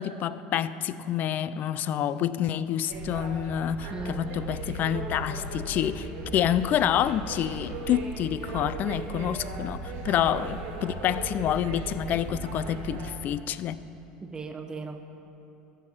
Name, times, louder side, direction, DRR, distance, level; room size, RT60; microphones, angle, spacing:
voice 1, 0.0-13.8, left 10 dB, 50° left, 0.3 m, -28 dB
sound 1, 2.9-13.2, right 3 dB, 80° right, 1.6 m, -37 dB
voice 2, 3.9-4.4 10.1-10.3 14.2-15.0, right 2 dB, 20° right, 0.9 m, -37 dB
14.0 x 5.6 x 4.7 m
supercardioid pair, 95°, 4 cm